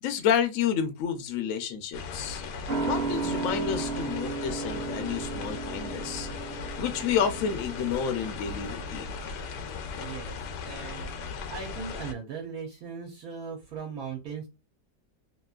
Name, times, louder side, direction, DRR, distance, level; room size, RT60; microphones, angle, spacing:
voice 1, 0.0-2.4 2.8-6.3 6.8-9.1, left 8 dB, 65° left, 0.9 m, -30 dB
sound 1, 1.9-12.1, left 5 dB, 90° left, 1.2 m, -38 dB
sound 2, 2.7-9.7 10.0-10.1, right 4 dB, 45° right, 1.0 m, -35 dB
voice 2, 9.9-10.4 10.6-11.1 11.5-14.5, right 6 dB, 70° right, 1.2 m, -38 dB
2.9 x 2.9 x 2.3 m
omnidirectional pair, 1.7 m